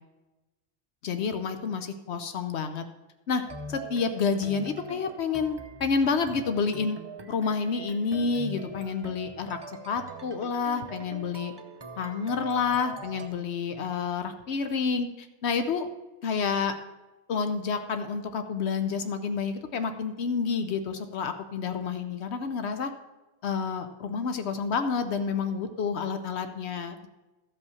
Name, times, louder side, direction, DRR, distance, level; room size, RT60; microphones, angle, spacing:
voice 1, 1.0-2.9 3.3-3.4 3.7-7.0 7.3-9.6 9.9-11.5 12.0-15.9 16.2-16.8 17.3-22.9 23.4-27.1, left 5 dB, 80° left, 8 dB, 1.0 m, -29 dB
sound 1, 3.4-13.3, right 2 dB, 25° right, 0.8 m, -43 dB
13.5 x 5.4 x 7.0 m, 1.1 s
omnidirectional pair, 1.1 m